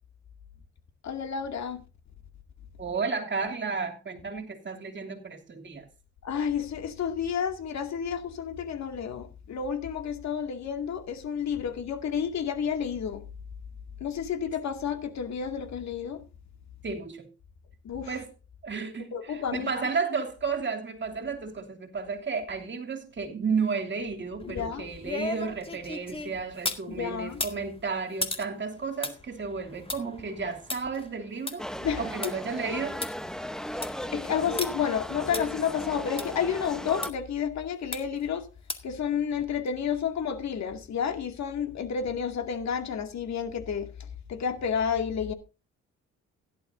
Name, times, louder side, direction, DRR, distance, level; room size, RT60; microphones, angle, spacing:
voice 1, 1.0-1.8 6.2-13.2 14.0-16.2 17.8-18.1 19.1-19.7 24.5-24.8 26.9-27.4 31.8-32.4 34.1-38.5 38.8-43.9 44.3-45.3, left 7 dB, 65° left, 2.3 m, -30 dB
voice 2, 2.8-5.9 16.8-17.3 18.0-18.3 18.6-31.7 32.0-33.0, right 5 dB, 40° right, 2.9 m, -32 dB
sound 1, 24.4-26.9 27.3-32.3 32.7-32.8 33.0-33.1 33.6-34.0 34.6-34.7 35.3-35.4 36.2-36.3 37.0-37.1 37.9-38.2 38.7-39.0 39.4-39.5, left 3 dB, 20° left, 2.0 m, -36 dB
sound 2, 31.6-37.1, equal, ahead, 0.9 m, -36 dB
16.5 x 11.5 x 2.6 m
cardioid pair, 90°, 30 cm